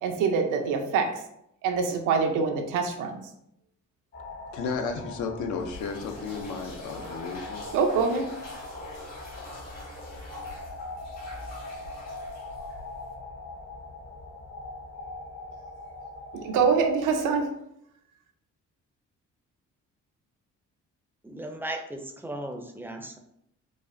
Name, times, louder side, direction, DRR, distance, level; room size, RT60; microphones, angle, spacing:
voice 1, 0.0-1.3 1.6-3.2 7.7-8.3 16.3-17.5, right 5 dB, 90° right, 4 dB, 0.6 m, -25 dB
sound 1, 4.1-17.5, left 2 dB, 35° left, 0.6 m, -42 dB
voice 2, 4.5-7.7, left 5 dB, 75° left, 4 dB, 0.6 m, -33 dB
sound 2, 5.5-13.1, left 2 dB, 60° left, 1.4 m, -44 dB
voice 3, 21.2-23.2, right 1 dB, 5° right, 4 dB, 0.4 m, -36 dB
4.9 x 2.1 x 2.6 m, 0.76 s
cardioid pair, 90°, 30 cm